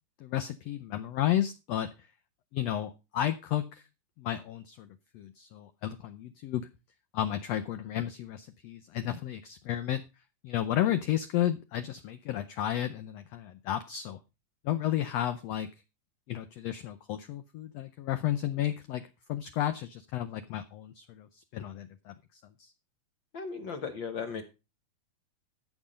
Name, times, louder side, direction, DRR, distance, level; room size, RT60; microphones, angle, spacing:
voice 1, 0.2-1.9 2.5-3.8 4.2-4.9 5.1-6.7 7.1-10.0 10.4-14.2 14.6-15.7 16.3-22.7, left 12 dB, 90° left, 10 dB, 1.4 m, -32 dB
voice 2, 23.3-24.4, left 5 dB, 70° left, 7 dB, 1.1 m, -36 dB
14.5 x 6.2 x 5.0 m, 0.29 s
omnidirectional pair, 3.8 m